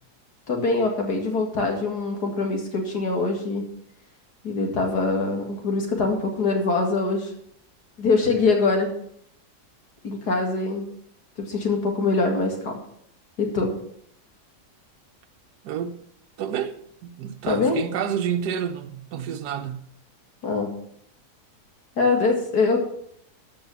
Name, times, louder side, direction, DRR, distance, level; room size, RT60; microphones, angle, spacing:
voice 1, 0.5-3.6 4.4-7.3 8.0-8.9 10.0-10.9 11.4-12.8 13.4-13.7 17.4-17.8 20.4-20.7 22.0-22.8, left 3 dB, 75° left, 2.6 m, -23 dB
voice 2, 15.6-16.0 16.4-19.8, right 8 dB, 80° right, 1.3 m, -29 dB
13.5 x 5.5 x 7.0 m
omnidirectional pair, 1.7 m